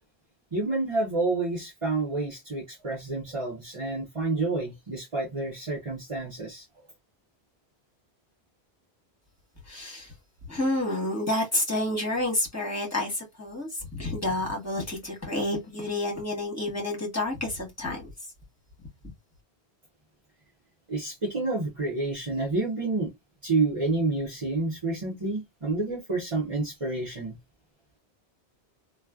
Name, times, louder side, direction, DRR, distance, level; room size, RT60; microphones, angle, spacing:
voice 1, 0.5-6.6 20.9-23.1 23.4-27.4, right 3 dB, 30° right, 1.1 m, -29 dB
voice 2, 9.7-10.1 10.5-18.1, left 1 dB, 15° left, 1.5 m, -29 dB
3.0 x 2.4 x 2.4 m
omnidirectional pair, 1.1 m